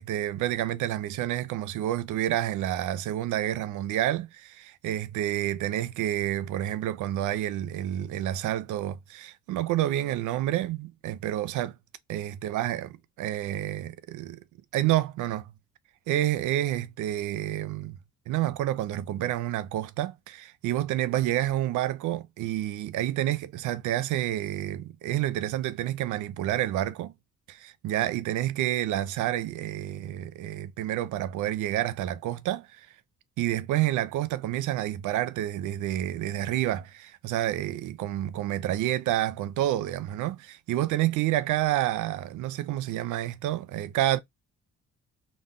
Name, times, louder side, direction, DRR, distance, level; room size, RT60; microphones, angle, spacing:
voice 1, 0.0-11.8 12.1-12.9 13.2-14.4 14.7-15.5 16.1-18.0 18.3-27.1 27.5-32.9 33.4-44.2, right 13 dB, 80° right, 0.5 m, -29 dB
2.2 x 2.1 x 3.5 m
cardioid pair, 90°, 30 cm